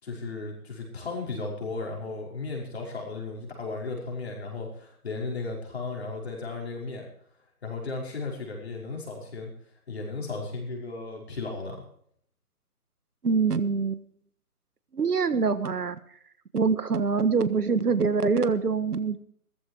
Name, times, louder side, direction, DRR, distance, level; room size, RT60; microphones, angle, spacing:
voice 1, 0.0-7.0 7.6-9.5 9.9-11.8, left 3 dB, 45° left, 0 dB, 5.6 m, -35 dB
voice 2, 13.2-14.0 14.9-16.0 16.5-19.2, right 5 dB, 90° right, 12 dB, 1.6 m, -24 dB
15.5 x 14.5 x 4.7 m, 0.63 s
hypercardioid pair, 175°, 45 cm